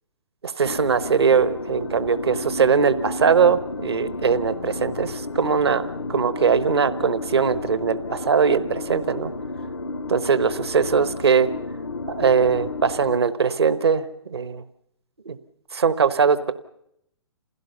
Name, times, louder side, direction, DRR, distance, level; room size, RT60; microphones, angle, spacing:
voice 1, 0.4-9.3 10.1-11.5 12.1-14.6 15.2-15.4 15.7-16.5, right 6 dB, 65° right, 13 dB, 1.2 m, -21 dB
sound 1, 0.6-13.2, left 3 dB, 70° left, 0.7 m, -32 dB
27.5 x 17.0 x 6.9 m, 0.77 s
figure-of-eight pair, 125°, 14 cm